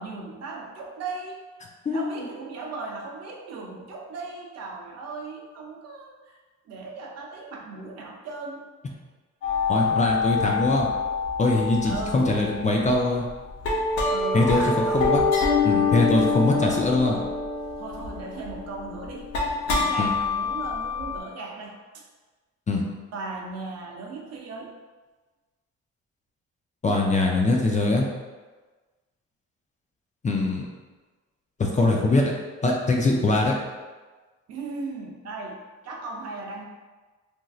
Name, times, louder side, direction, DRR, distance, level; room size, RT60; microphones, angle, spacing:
voice 1, 0.0-1.4 1.9-6.4 6.7-8.7 11.8-12.3 14.1-15.4 16.6-17.3 17.8-19.3 19.7-22.0 23.1-24.7 34.5-36.6, right 3 dB, 55° right, -1 dB, 0.6 m, -37 dB
voice 2, 1.9-2.2 9.7-10.9 11.4-13.2 14.3-15.2 15.6-17.2 20.0-20.1 22.7-22.8 26.8-28.0 30.2-30.7 31.6-32.3 32.6-33.5, left 2 dB, 25° left, 0 dB, 0.4 m, -22 dB
sound 1, 9.4-12.9 13.3-21.2, left 4 dB, 75° left, 0.7 m, -26 dB
3.0 x 2.6 x 2.3 m, 1.3 s
cardioid pair, 90°, 30 cm